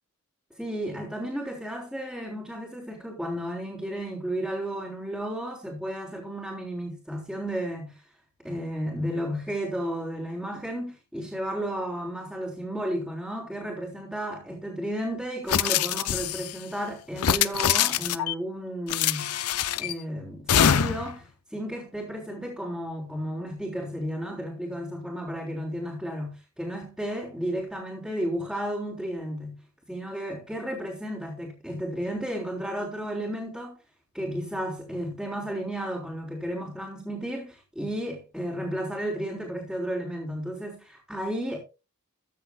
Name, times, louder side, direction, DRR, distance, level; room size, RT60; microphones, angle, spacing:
voice 1, 0.6-8.0 8.4-19.3 19.8-29.6 29.9-33.8 34.1-41.6, equal, ahead, 3.6 m, -33 dB
sound 1, 15.5-16.5 17.2-18.3 18.9-19.9 20.5-21.1, left 9 dB, 90° left, 0.6 m, -24 dB
14.5 x 9.6 x 2.3 m
head